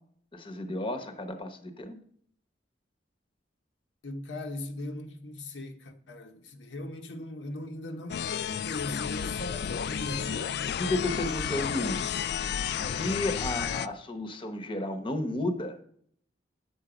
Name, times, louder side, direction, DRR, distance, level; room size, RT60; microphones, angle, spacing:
voice 1, 0.3-2.0 10.8-15.8, left 1 dB, 30° left, 0.9 m, -33 dB
voice 2, 4.0-10.4 12.8-13.1, left 1 dB, 80° left, 0.9 m, -39 dB
sound 1, 8.1-13.9, left 8 dB, 60° left, 0.3 m, -32 dB
9.6 x 6.9 x 4.9 m
head